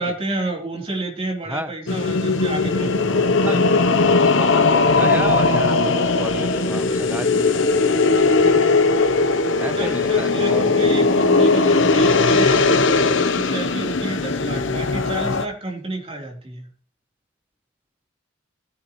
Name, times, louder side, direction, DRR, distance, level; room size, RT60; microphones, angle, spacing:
voice 1, 0.0-4.0 9.6-16.7, right 2 dB, 30° right, 0 dB, 3.8 m, -31 dB
sound 1, 1.9-15.5, left 3 dB, 65° left, 1.0 m, -18 dB
voice 2, 3.1-3.6 4.0-8.6 9.6-10.7, right 1 dB, 10° right, 9 dB, 0.9 m, -32 dB
19.5 x 9.8 x 3.2 m, 0.42 s
head